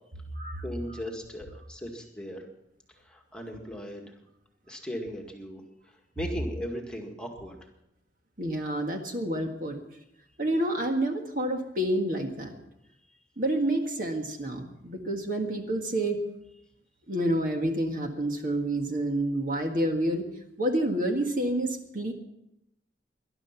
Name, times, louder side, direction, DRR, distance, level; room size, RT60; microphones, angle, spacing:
voice 1, 0.6-2.4 3.0-4.0 4.7-5.6 6.2-7.6, equal, 5° left, 1 dB, 1.9 m, -37 dB
voice 2, 8.4-9.8 10.4-12.6 13.4-16.2 17.1-20.3 20.6-22.1, right 1 dB, 45° right, 3 dB, 1.8 m, -28 dB
19.5 x 11.5 x 5.9 m, 0.83 s
head